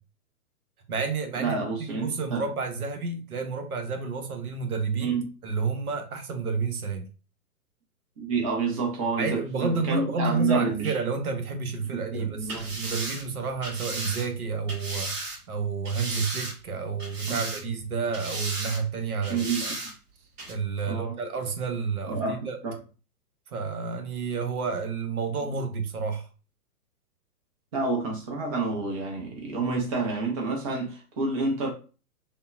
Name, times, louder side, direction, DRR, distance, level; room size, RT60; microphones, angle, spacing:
voice 1, 0.9-1.6 1.9-5.2 5.4-7.0 9.2-15.1 15.5-19.7 20.5-22.6 23.5-26.3, right 4 dB, 70° right, 0.8 m, -30 dB
voice 2, 1.4-2.5 5.0-5.2 8.2-11.0 11.9-12.7 17.3-17.8 19.3-19.7 20.9-21.2 22.1-22.8 27.7-31.7, right 4 dB, 25° right, 0.5 m, -29 dB
sound 1, 12.4-15.4 15.8-16.7 17.0-17.8 18.1-18.8 19.2-19.9 20.4-20.5, right 2 dB, 40° right, 1.5 m, -35 dB
3.5 x 2.0 x 2.4 m
figure-of-eight pair, 115°, 46 cm